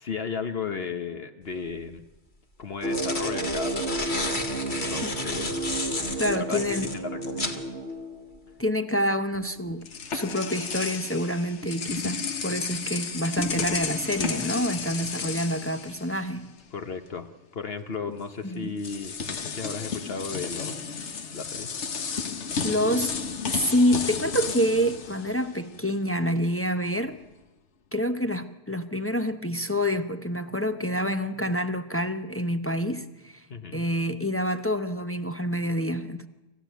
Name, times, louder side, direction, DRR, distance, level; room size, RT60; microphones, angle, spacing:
voice 1, 0.0-2.0 2.6-4.2 4.7-5.6 5.9-6.6 6.9-7.6 14.8-15.1 16.7-20.8 21.3-21.7 33.5-33.9, left 5 dB, 60° left, 1.3 m, -35 dB
sound 1, 1.5-1.6 2.6-7.6, left 2 dB, 45° left, 1.9 m, -32 dB
sound 2, 2.8-8.6, right 2 dB, 70° right, 2.0 m, -32 dB
voice 2, 6.2-6.9 8.6-9.8 10.1-16.5 18.1-18.8 22.6-23.1 23.5-27.2 27.9-33.4 33.7-36.3, equal, 15° left, 0.8 m, -27 dB
sound 3, 9.3-16.6 16.9-17.1 18.2-18.3 18.8-25.9, left 5 dB, 75° left, 1.5 m, -33 dB
26.5 x 15.5 x 9.2 m
omnidirectional pair, 1.2 m